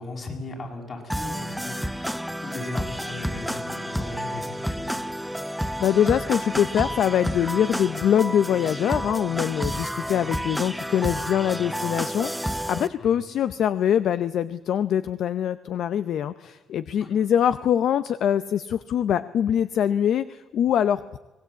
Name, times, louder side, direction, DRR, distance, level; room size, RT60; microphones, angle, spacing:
voice 1, 0.0-2.0 2.4-5.0 13.0-13.2 17.0-17.1, left 2 dB, 50° left, 1 dB, 7.1 m, -37 dB
sound 1, 1.1-12.9, equal, ahead, 0.8 m, -30 dB
voice 2, 5.8-21.2, left 9 dB, 70° left, 13 dB, 0.6 m, -23 dB
24.0 x 19.5 x 8.3 m, 1.2 s
cardioid pair, 90°, 0 cm